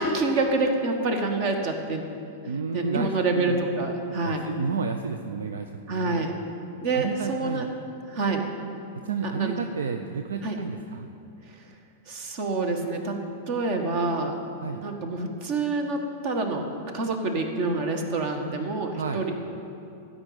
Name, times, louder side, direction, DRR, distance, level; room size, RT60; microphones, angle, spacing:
voice 1, 0.0-2.0 2.7-4.4 5.9-6.3 6.8-7.7 8.1-8.4 9.2-9.6 10.4-10.6 12.1-13.2 13.5-14.3 14.8-16.6 16.9-19.3, right 3 dB, 50° right, 4 dB, 1.5 m, -27 dB
voice 2, 2.5-3.6 4.2-6.3 6.9-7.7 8.9-11.1 14.6-14.8 19.0-19.3, right 5 dB, 75° right, 7 dB, 0.5 m, -31 dB
13.0 x 5.3 x 8.7 m, 2.7 s
hypercardioid pair, 100°, 0 cm